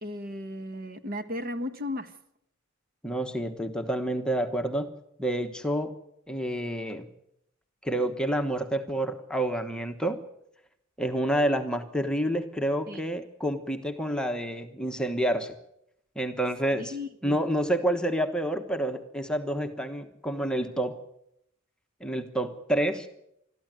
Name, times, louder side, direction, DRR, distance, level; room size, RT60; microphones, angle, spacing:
voice 1, 0.0-2.1 12.9-13.0 16.8-17.4, left 1 dB, 40° right, 9 dB, 1.4 m, -35 dB
voice 2, 3.0-4.9 5.2-6.0 6.3-7.1 7.8-10.2 11.0-15.6 16.1-16.9 17.2-21.0 22.0-23.1, right 1 dB, 5° left, 5 dB, 1.2 m, -28 dB
21.5 x 13.5 x 9.0 m, 0.77 s
head